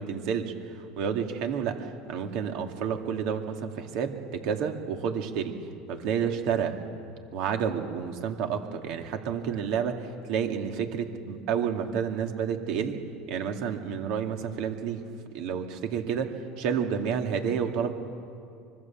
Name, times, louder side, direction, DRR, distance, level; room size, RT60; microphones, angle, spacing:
voice 1, 0.0-5.5 5.9-6.8 7.3-13.0 13.3-15.0 15.3-16.3 16.6-17.9, right 7 dB, 65° right, 5 dB, 2.5 m, -30 dB
25.0 x 21.0 x 7.4 m, 2.4 s
supercardioid pair, 100°, 0 cm